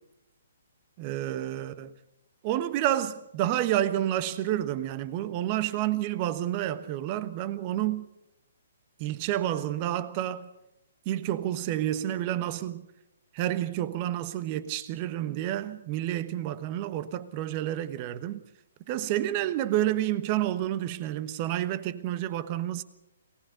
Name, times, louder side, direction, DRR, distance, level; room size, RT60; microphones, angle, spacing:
voice 1, 1.0-1.9 2.4-8.1 9.0-10.5 11.0-12.9 13.3-18.4 18.9-22.8, right 12 dB, 35° right, 1.2 m, -29 dB
23.0 x 19.0 x 6.6 m
figure-of-eight pair, 130°, 0 cm